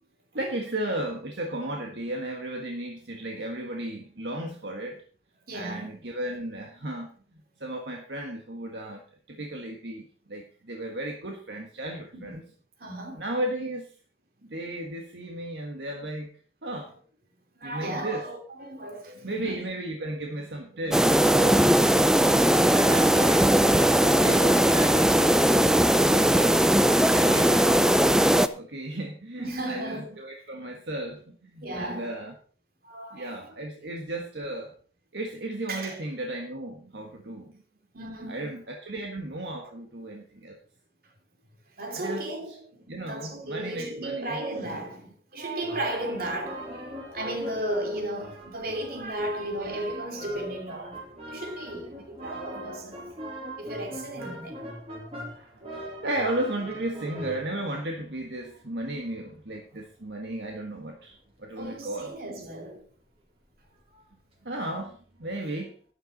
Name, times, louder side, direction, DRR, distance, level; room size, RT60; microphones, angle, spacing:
voice 1, 0.3-5.0 5.5-7.1 7.6-9.0 9.3-12.4 13.1-13.9 14.5-16.3 16.6-16.9 17.6-18.2 19.2-21.9 22.7-23.5 24.0-26.7 27.1-32.3 33.1-34.7 35.1-37.6 38.3-40.6 41.9-42.3 42.9-44.4 52.0-52.1 52.6-52.8 55.3-62.1 64.4-65.7, right 1 dB, 75° right, 1.6 m, -35 dB
voice 2, 5.5-6.0 12.1-12.5 12.8-13.2 17.6-19.6 20.0-20.3 20.7-20.9 29.4-30.2 31.6-32.1 32.8-33.5 35.7-36.0 37.9-38.5 41.8-53.0 53.6-54.6 61.6-62.8, right 1 dB, 55° right, 3.0 m, -35 dB
sound 1, 20.9-28.5, right 1 dB, 5° right, 0.5 m, -19 dB
sound 2, 45.6-60.6 61.6-61.7 63.6-63.7 63.9-64.1 64.4-64.5 65.2-65.3, right 1 dB, 35° right, 4.1 m, -41 dB
12.5 x 10.5 x 4.0 m
head